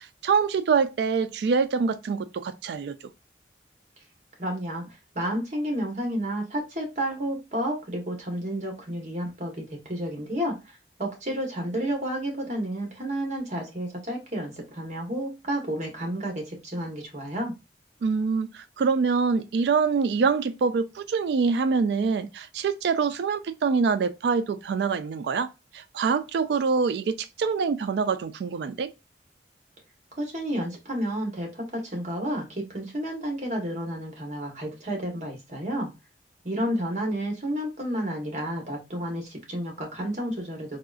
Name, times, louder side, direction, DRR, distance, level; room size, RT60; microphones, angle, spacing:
voice 1, 0.0-3.0 18.0-28.9, right 5 dB, 70° right, 0.3 m, -25 dB
voice 2, 4.4-17.5 30.2-35.9 36.4-40.8, equal, 40° right, 1.1 m, -31 dB
3.7 x 2.4 x 2.3 m
head